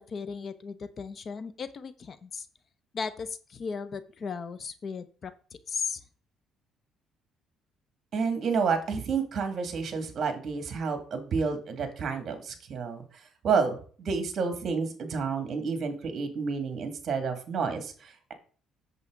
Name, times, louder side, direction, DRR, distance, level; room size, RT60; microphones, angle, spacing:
voice 1, 0.0-2.5 2.9-6.0, left 5 dB, 45° left, 13 dB, 0.8 m, -36 dB
voice 2, 8.1-13.0 13.4-18.3, right 5 dB, 45° right, 7 dB, 2.3 m, -30 dB
8.3 x 7.2 x 3.9 m, 0.41 s
cardioid pair, 105°, 0 cm